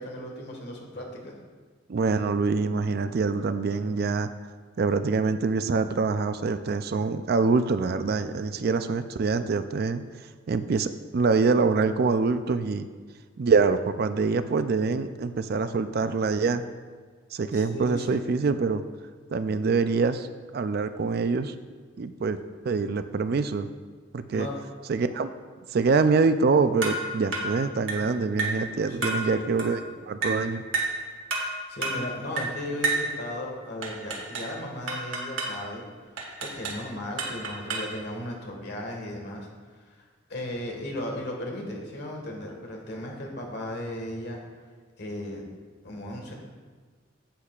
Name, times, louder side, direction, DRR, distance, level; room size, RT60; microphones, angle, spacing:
voice 1, 0.0-1.3 17.5-18.2 24.3-24.6 28.9-29.5 31.7-35.8 36.4-39.5 40.3-44.4 45.0-45.4 45.8-46.3, left 1 dB, 60° left, 0 dB, 1.6 m, -36 dB
voice 2, 1.9-4.3 4.8-10.0 10.5-12.9 13.4-16.7 17.3-18.8 19.3-20.3 20.5-21.5 22.0-22.4 22.6-23.7 24.1-24.5 24.9-25.3 25.7-29.8 30.1-30.6, right 4 dB, 55° right, 11 dB, 0.4 m, -25 dB
sound 1, 26.8-27.0 27.3-27.5 27.9-28.1 28.4-28.6 29.0-29.2 29.6-29.8 30.2-30.4 30.7-31.0 31.3-31.5 31.8-32.0 32.4-32.5 32.8-33.1 33.8-34.5 34.9-35.6 36.2-36.8 37.2-38.0, right 3 dB, 90° right, 1.5 m, -30 dB
10.0 x 8.3 x 2.4 m, 1.5 s
head